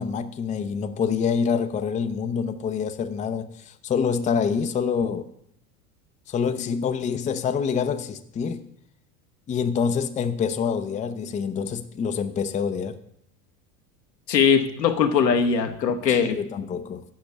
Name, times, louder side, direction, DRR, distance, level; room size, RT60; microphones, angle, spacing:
voice 1, 0.0-5.3 6.3-8.7 9.5-13.0 16.1-17.0, left 6 dB, 15° left, 0.5 m, -26 dB
voice 2, 14.3-16.4, left 6 dB, 80° left, 1.2 m, -20 dB
7.9 x 6.2 x 8.1 m
figure-of-eight pair, 75°, 49 cm